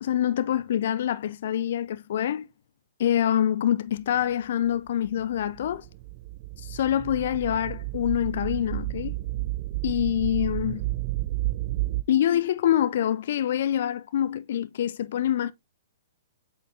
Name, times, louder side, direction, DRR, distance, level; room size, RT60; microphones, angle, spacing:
voice 1, 0.0-2.5 3.0-5.8 6.6-9.1 9.8-10.9 12.1-15.5, left 10 dB, 50° left, 0.4 m, -25 dB
sound 1, 5.1-12.0, right 19 dB, 40° right, 0.5 m, -31 dB
8.1 x 4.4 x 2.7 m
figure-of-eight pair, 115°, 0 cm